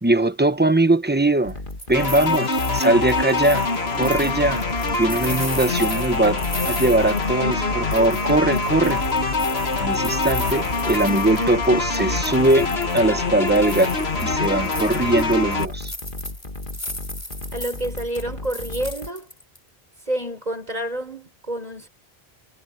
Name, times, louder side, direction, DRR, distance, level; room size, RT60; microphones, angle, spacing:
voice 1, 0.0-1.6 1.9-4.6 5.0-6.4 6.7-9.0 9.8-13.9 14.2-15.9, right 2 dB, 10° right, 0.9 m, -20 dB
sound 1, 1.4-2.3 4.0-19.1, left 2 dB, 55° left, 2.5 m, -35 dB
sound 2, 1.5-7.6 7.9-11.7 11.9-13.1 13.5-19.6, left 1 dB, 30° left, 5.8 m, -36 dB
sound 3, 1.9-15.6, left 3 dB, 75° left, 2.3 m, -24 dB
voice 2, 17.5-19.3 20.1-21.9, right 1 dB, 40° right, 5.5 m, -29 dB
omnidirectional pair, 1.1 m